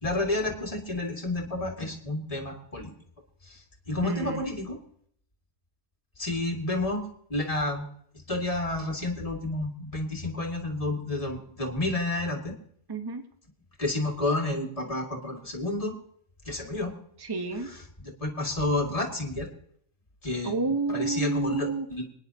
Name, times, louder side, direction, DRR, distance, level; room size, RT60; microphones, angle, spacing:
voice 1, 0.0-2.9 3.5-3.6 3.9-4.8 6.2-7.0 7.3-7.8 8.3-12.5 13.8-15.9 16.5-16.9 18.0-19.5 20.2-20.5 20.9-22.0, left 2 dB, 35° left, 1 dB, 2.3 m, -30 dB
voice 2, 4.0-4.4 12.9-13.2 17.2-17.7 20.4-22.0, right 3 dB, 25° right, 6 dB, 1.1 m, -30 dB
25.5 x 10.0 x 2.8 m, 0.63 s
omnidirectional pair, 1.1 m